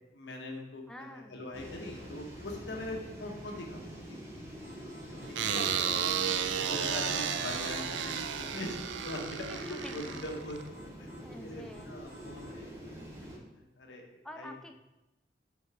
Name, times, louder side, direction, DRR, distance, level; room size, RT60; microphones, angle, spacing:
voice 1, 0.1-4.1 4.8-5.8 6.5-8.8 9.0-11.1 11.4-13.0 13.3-14.1 14.4-14.5, left 1 dB, 85° left, 1 dB, 1.0 m, -42 dB
voice 2, 0.9-1.5 5.3-5.8 9.5-10.4 11.2-12.0 14.2-14.7, left 1 dB, 5° left, 5 dB, 0.3 m, -48 dB
sound 1, 1.5-13.4, equal, 15° right, 1.3 m, -45 dB
sound 2, 4.6-6.2 6.6-7.4 8.9-9.4 10.3-11.3 11.7-12.6, left 1 dB, 65° right, 1.8 m, -57 dB
sound 3, 5.4-10.7, right 8 dB, 90° right, 0.4 m, -33 dB
5.3 x 3.9 x 4.7 m, 0.99 s
head